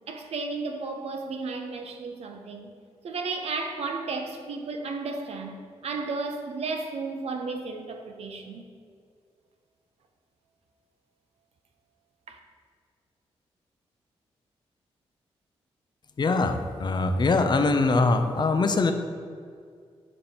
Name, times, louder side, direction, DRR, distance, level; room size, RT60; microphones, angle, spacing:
voice 1, 0.1-2.7 3.0-8.7 12.3-12.4, right 3 dB, 70° right, 0.6 m, -33 dB
voice 2, 16.2-18.9, left 3 dB, 40° left, 0.6 m, -23 dB
5.1 x 4.3 x 5.9 m
cardioid pair, 55°, 11 cm